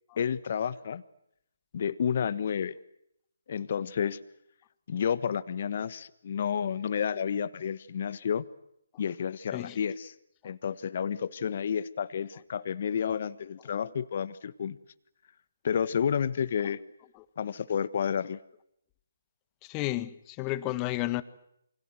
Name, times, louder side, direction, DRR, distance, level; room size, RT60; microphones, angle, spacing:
voice 1, 0.2-1.0 1.7-2.7 3.5-4.2 4.9-8.4 9.0-10.1 10.4-14.8 15.6-16.8 17.4-18.4, left 7 dB, 45° left, 1.4 m, -30 dB
voice 2, 19.6-21.2, left 17 dB, 20° left, 1.5 m, -32 dB
29.0 x 25.0 x 7.9 m
figure-of-eight pair, 145°, 0 cm